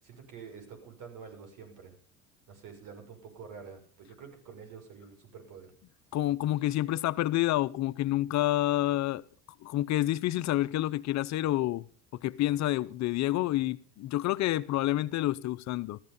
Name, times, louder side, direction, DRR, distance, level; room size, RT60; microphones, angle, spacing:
voice 1, 0.0-2.0 2.5-5.7, right 6 dB, 60° right, 6.0 m, -48 dB
voice 2, 6.1-9.2 9.6-11.9 12.1-16.0, left 15 dB, 50° left, 0.6 m, -28 dB
14.5 x 13.5 x 5.4 m
supercardioid pair, 105°, 36 cm